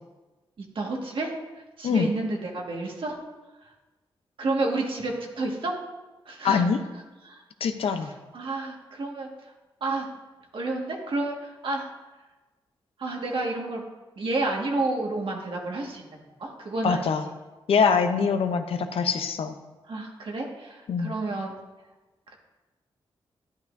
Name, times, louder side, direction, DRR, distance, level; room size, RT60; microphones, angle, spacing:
voice 1, 0.6-3.2 3.6-3.7 4.4-5.8 6.3-6.6 7.2-7.4 7.8-9.5 9.8-10.1 10.5-11.9 13.0-13.9 14.2-17.1 19.9-21.5 22.3-22.4, right 2 dB, 65° right, 0 dB, 1.8 m, -30 dB
voice 2, 6.4-6.8 7.6-8.1 16.8-17.2 17.7-19.5 20.9-21.1, left 6 dB, 80° left, 8 dB, 0.7 m, -23 dB
11.5 x 10.5 x 2.7 m, 1.2 s
cardioid pair, 90°, 10 cm